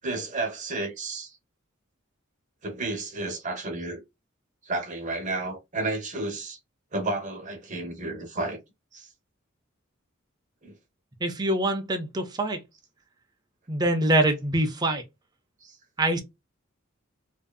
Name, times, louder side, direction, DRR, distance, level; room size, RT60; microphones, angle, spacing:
voice 1, 0.0-1.4 2.6-4.0 4.6-6.6 6.9-8.6 8.9-9.1 10.6-10.7 15.6-15.8, right 2 dB, 40° right, 0.8 m, -32 dB
voice 2, 11.2-12.6 13.7-15.0 16.0-16.2, right 1 dB, 20° right, 0.4 m, -24 dB
2.6 x 2.4 x 2.2 m
head